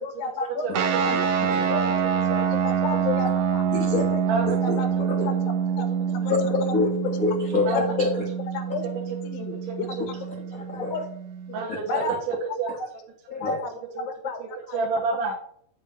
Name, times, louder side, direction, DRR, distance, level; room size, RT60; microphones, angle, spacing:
voice 1, 0.0-0.7 1.0-1.1 1.7-1.8 2.3-3.7 3.9-4.2 4.6-4.9 5.2-5.3 5.8-5.9 6.2-6.3 7.7-7.8 8.5-10.0 10.9-11.0 11.5-11.6 11.9-12.1 13.4-14.4 14.7-14.8, left 5 dB, 90° left, 7 dB, 3.0 m, -33 dB
sound 1, 0.7-11.6, right 7 dB, 90° right, 1.3 m, -26 dB
voice 2, 3.7-4.1 4.7-4.8 6.4-8.1 10.5-11.0 11.9-12.1 13.3-13.6, left 3 dB, 65° left, -3 dB, 0.8 m, -26 dB
voice 3, 11.5-12.7 14.0-14.1 14.7-15.4, right 4 dB, 70° right, -1 dB, 2.6 m, -28 dB
9.6 x 7.2 x 3.2 m, 0.64 s
omnidirectional pair, 4.0 m